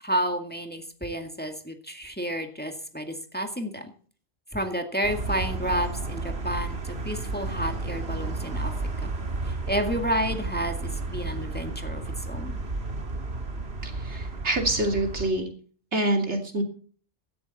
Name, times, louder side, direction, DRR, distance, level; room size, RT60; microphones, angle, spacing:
voice 1, 0.0-3.9 4.5-8.7 9.0-9.1 9.5-12.6, equal, 10° left, 5 dB, 2.0 m, -30 dB
sound 1, 5.0-15.3, right 3 dB, 65° right, 2.1 m, -32 dB
voice 2, 13.8-15.5 15.9-16.6, right 1 dB, 80° right, 4 dB, 3.1 m, -26 dB
16.0 x 12.5 x 4.2 m, 0.43 s
omnidirectional pair, 1.1 m